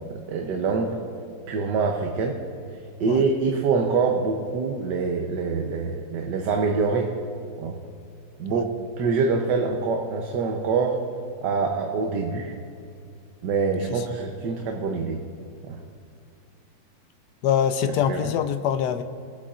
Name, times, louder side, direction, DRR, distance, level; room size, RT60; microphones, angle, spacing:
voice 1, 0.3-1.0 1.5-2.3 3.0-7.1 7.6-7.8 8.4-11.0 11.4-12.6 13.4-15.2 15.7-15.8 18.1-18.3, right 4 dB, 70° right, 2 dB, 1.4 m, -25 dB
voice 2, 17.4-19.0, left 9 dB, 75° left, 9 dB, 1.1 m, -24 dB
23.5 x 8.4 x 2.5 m, 2.4 s
omnidirectional pair, 2.0 m